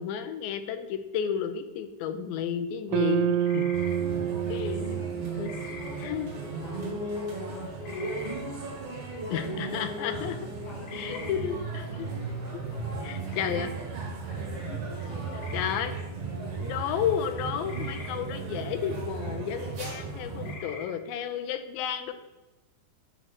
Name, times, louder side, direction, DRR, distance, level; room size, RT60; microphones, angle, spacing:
voice 1, 0.0-3.7 4.5-5.1 5.4-5.5 6.0-6.3 9.3-10.4 10.9-12.1 13.0-13.7 14.7-14.8 15.5-15.9 16.6-22.1, left 8 dB, 85° left, 9 dB, 2.3 m, -32 dB
sound 1, 2.9-7.2, right 10 dB, 85° right, 1.9 m, -30 dB
sound 2, 3.4-4.0 5.4-5.9 7.8-8.4 10.8-11.3 13.3-13.7 15.4-15.8 17.7-18.1 20.4-20.9, left 4 dB, 65° left, 2.4 m, -43 dB
sound 3, 3.7-20.6, right 3 dB, 55° right, 2.8 m, -35 dB
voice 2, 4.4-5.0 5.3-6.2 6.6-10.3 10.6-11.5 11.8-13.5 13.9-14.5 15.0-16.0, left 2 dB, 50° left, -1 dB, 1.8 m, -49 dB
8.9 x 3.1 x 5.9 m, 1.1 s
omnidirectional pair, 4.2 m